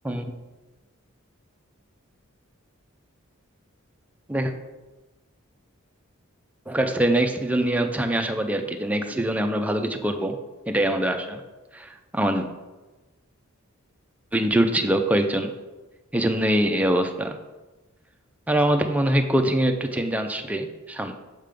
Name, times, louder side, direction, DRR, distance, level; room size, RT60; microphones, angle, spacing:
voice 1, 0.0-0.4 4.3-4.5 6.7-10.4 10.7-11.4 11.7-12.5 14.3-15.5 16.1-17.4 18.5-21.1, right 1 dB, 5° right, 5 dB, 0.4 m, -23 dB
6.5 x 3.5 x 5.1 m, 1.2 s
head